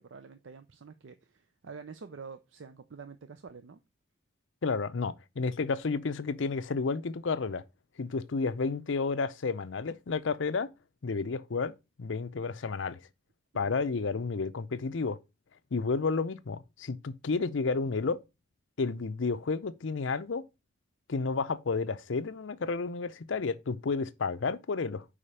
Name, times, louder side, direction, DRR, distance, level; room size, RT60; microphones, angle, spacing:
voice 1, 0.0-3.8 13.5-14.0, right 5 dB, 75° right, 0.5 m, -48 dB
voice 2, 4.6-7.6 8.0-10.7 11.0-13.0 13.5-15.2 15.7-18.2 18.8-20.4 21.1-25.0, left 4 dB, 75° left, 0.6 m, -31 dB
5.0 x 4.9 x 5.6 m
head